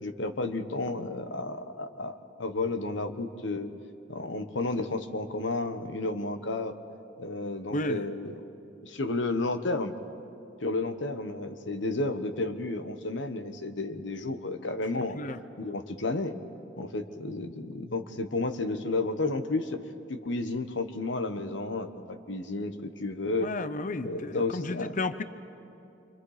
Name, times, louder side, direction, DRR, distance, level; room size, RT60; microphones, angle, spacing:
voice 1, 0.0-3.7 4.1-6.7 7.2-8.4 8.8-10.0 10.6-15.2 15.6-16.4 16.8-19.8 20.1-23.5 24.0-24.9, left 2 dB, 75° left, 9 dB, 1.2 m, -32 dB
voice 2, 7.7-8.1 15.1-15.4 23.4-25.2, left 2 dB, 45° left, 13 dB, 0.7 m, -32 dB
28.0 x 26.0 x 5.0 m, 2.8 s
head